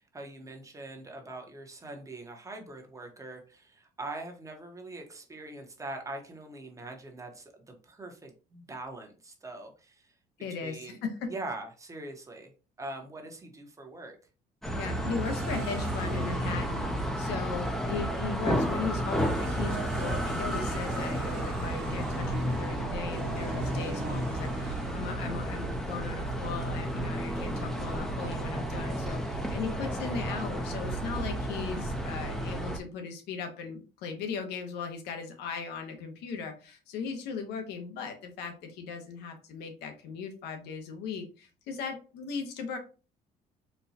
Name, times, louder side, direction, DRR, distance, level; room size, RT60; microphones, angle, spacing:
voice 1, 0.0-10.1 10.6-11.0 11.3-12.5 12.8-14.2, right 2 dB, 20° right, 3 dB, 0.9 m, -42 dB
voice 2, 10.4-11.3 14.7-42.8, left 5 dB, 85° left, 5 dB, 0.9 m, -38 dB
sound 1, 14.6-32.8, equal, ahead, 0.5 m, -32 dB
sound 2, 15.2-17.8 18.9-30.0, right 10 dB, 75° right, 0.4 m, -45 dB
4.3 x 2.2 x 2.7 m, 0.34 s
cardioid pair, 110°, 17 cm